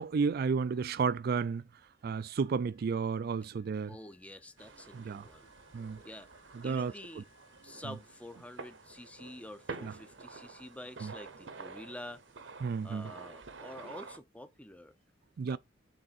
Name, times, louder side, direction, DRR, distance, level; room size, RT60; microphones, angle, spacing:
voice 1, 0.0-1.7 2.0-4.0 4.9-5.3 5.7-6.0 6.5-7.2 7.8-7.9 9.8-9.9 11.0-11.1 12.6-13.1 15.4-15.6, right 5 dB, 55° right, 0.4 m, -32 dB
Wind instrument woodwind instrument, 2.0-10.3, left 6 dB, 65° left, 2.0 m, -71 dB
voice 2, 3.9-5.5 6.0-6.3 6.6-7.3 7.6-12.2 12.8-14.9 15.5-15.6, left 1 dB, 5° left, 0.5 m, -48 dB
sound 1, 4.6-14.2, right 4 dB, 75° right, 1.0 m, -49 dB
6.4 x 3.7 x 4.1 m
head